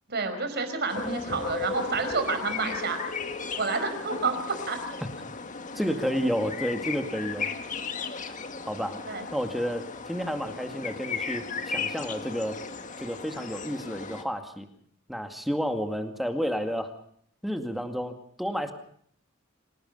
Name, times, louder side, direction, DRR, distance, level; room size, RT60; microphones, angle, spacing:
voice 1, 0.1-3.0 3.6-4.8 9.1-9.2, right 4 dB, 50° right, 8 dB, 4.8 m, -29 dB
sound 1, 0.9-14.2, left 4 dB, 35° left, 1.6 m, -36 dB
voice 2, 5.8-7.5 8.6-9.0 9.3-12.6 13.0-14.7 15.1-16.9 17.4-18.7, equal, ahead, 6 dB, 2.2 m, -31 dB
27.5 x 18.5 x 5.6 m, 0.62 s
head